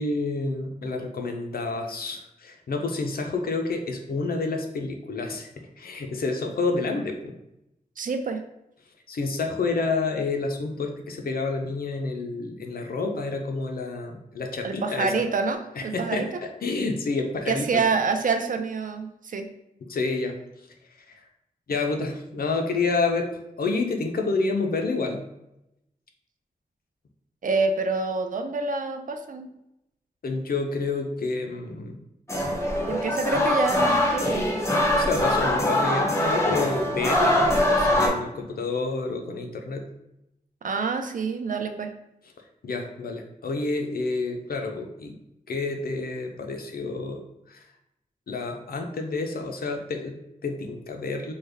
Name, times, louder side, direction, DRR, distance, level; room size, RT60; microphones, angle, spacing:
voice 1, 0.0-7.3 9.1-15.2 15.8-17.8 19.8-20.4 21.7-23.3 23.6-25.2 30.2-32.0 34.9-39.8 42.6-45.2 45.5-47.7 48.3-51.3, left 3 dB, 80° left, 3 dB, 0.5 m, -29 dB
voice 2, 8.0-8.4 14.6-16.4 17.5-19.5 27.4-29.5 32.9-34.5 40.6-41.9, right 4 dB, 65° right, 7 dB, 0.4 m, -27 dB
sound 1, 32.3-38.1, left 1 dB, 20° left, 0.7 m, -23 dB
3.3 x 2.2 x 3.3 m, 0.86 s
wide cardioid pair, 75°, 15 cm